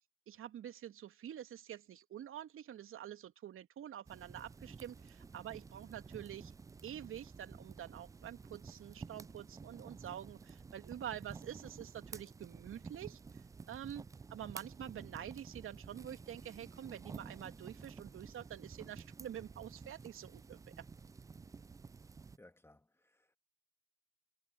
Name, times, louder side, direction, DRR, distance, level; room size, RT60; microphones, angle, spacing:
voice 1, 0.3-6.5 6.8-13.2 13.7-20.8, right 10 dB, 40° right, 2.9 m, -47 dB
sound 1, 4.1-22.4, right 4 dB, 10° right, 0.4 m, -52 dB
voice 2, 22.4-23.4, left 1 dB, 5° left, 2.6 m, -62 dB
hypercardioid pair, 80°, 33 cm